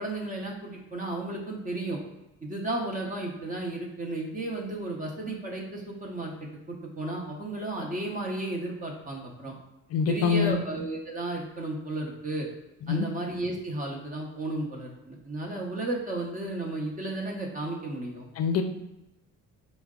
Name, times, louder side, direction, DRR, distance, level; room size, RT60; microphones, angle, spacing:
voice 1, 0.0-2.0 2.4-9.5 10.1-12.5 12.9-18.3, right 2 dB, 25° right, -1 dB, 0.8 m, -33 dB
voice 2, 9.9-10.6 12.9-13.1 18.4-18.6, left 6 dB, 55° left, 7 dB, 0.5 m, -24 dB
4.4 x 2.1 x 3.6 m, 0.98 s
cardioid pair, 145°, 30 cm